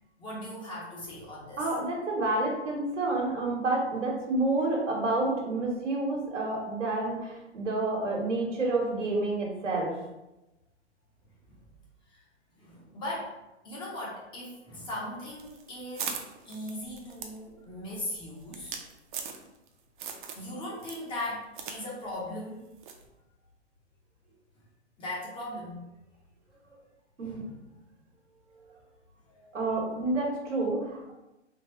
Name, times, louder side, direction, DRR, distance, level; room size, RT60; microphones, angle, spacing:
voice 1, 0.2-1.7 12.1-12.2 12.6-13.3 13.6-16.2 16.5-18.8 20.3-22.6 25.0-25.8 27.2-27.6 29.3-29.5, left 1 dB, 15° left, -5 dB, 0.6 m, -38 dB
voice 2, 1.6-9.9 27.2-27.5 29.5-31.1, right 2 dB, 90° right, -1 dB, 1.2 m, -29 dB
sound 1, 15.3-19.7 20.0-20.5 20.8-21.8 22.1-22.2 22.8-23.1, right 6 dB, 45° right, 0.5 m, -39 dB
3.4 x 2.3 x 2.9 m, 0.96 s
hypercardioid pair, 125°, 36 cm